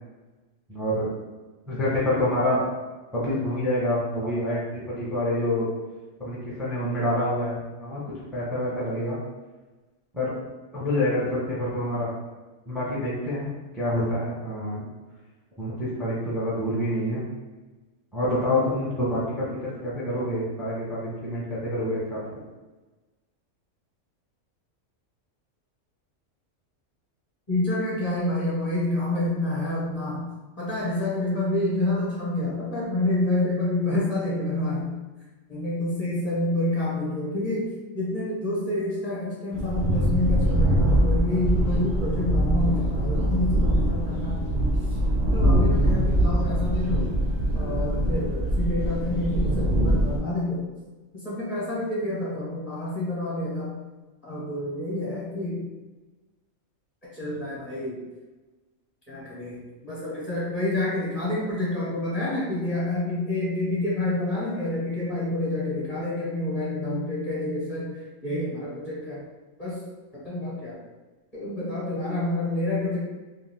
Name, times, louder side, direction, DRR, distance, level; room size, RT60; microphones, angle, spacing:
voice 1, 0.7-1.1 1.7-2.6 3.1-4.6 4.9-5.7 6.2-8.0 8.3-9.2 10.1-10.3 10.7-12.1 12.7-14.9 15.6-17.2 18.1-22.2, left 1 dB, ahead, -7 dB, 0.6 m, -27 dB
voice 2, 27.5-30.3 30.6-35.0 35.5-37.7 37.9-44.5 45.3-47.1 47.5-50.6 51.2-53.7 54.2-55.6 57.1-58.0 59.1-67.9 68.2-69.2 69.6-69.7 70.2-70.7 71.3-73.0, left 1 dB, 30° left, -8 dB, 0.9 m, -28 dB
sound 1, 39.5-50.2, right 1 dB, 55° right, 0.5 m, -23 dB
2.6 x 2.3 x 3.4 m, 1.2 s
omnidirectional pair, 1.4 m